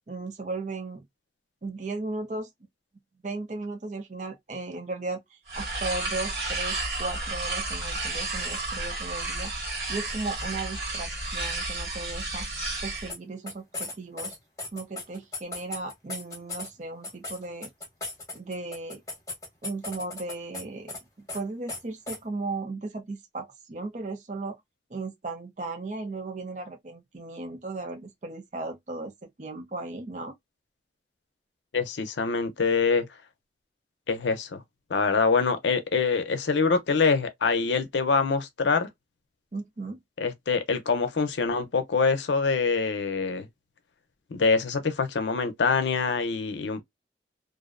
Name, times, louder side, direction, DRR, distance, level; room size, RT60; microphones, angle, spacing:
voice 1, 0.1-1.1 1.6-2.5 3.2-5.2 5.6-9.5 9.9-12.5 12.8-14.4 14.7-17.7 18.3-19.0 19.6-21.0 21.3-24.6 24.9-29.1 29.4-30.4 39.5-40.0, right 3 dB, 40° right, 0.5 m, -36 dB
sound 1, 5.5-13.1, right 2 dB, 75° right, 1.3 m, -32 dB
sound 2, 13.1-13.2 13.5-16.7 17.0-20.6 20.9-21.0 21.3-21.4 21.7-21.8 22.1-22.2, left 2 dB, 20° left, 0.9 m, -36 dB
voice 2, 31.7-33.1 34.1-34.6 34.9-38.9 40.2-43.5 44.3-46.8, left 4 dB, 90° left, 0.6 m, -25 dB
2.5 x 2.0 x 2.4 m
head